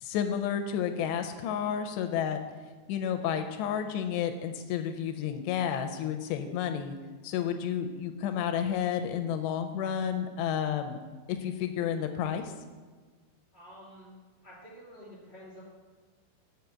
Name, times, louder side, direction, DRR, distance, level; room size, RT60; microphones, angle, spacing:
voice 1, 0.0-2.4 2.9-7.0 7.2-11.0 11.3-12.5, left 8 dB, 85° left, 6 dB, 2.7 m, -31 dB
voice 2, 13.5-14.1 14.4-15.6, equal, 20° left, -6 dB, 2.0 m, -49 dB
7.8 x 4.9 x 7.0 m, 1.4 s
omnidirectional pair, 5.0 m